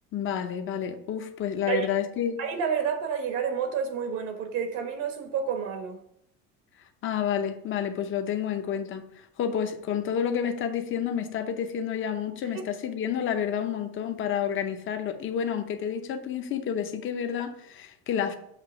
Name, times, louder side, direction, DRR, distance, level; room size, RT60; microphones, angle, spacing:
voice 1, 0.1-2.4 7.0-9.1 9.4-18.4, left 8 dB, 40° left, 0.7 m, -29 dB
voice 2, 2.4-6.0 12.5-12.6, right 7 dB, 70° right, 1.1 m, -29 dB
7.4 x 2.9 x 6.0 m
cardioid pair, 155°, 31 cm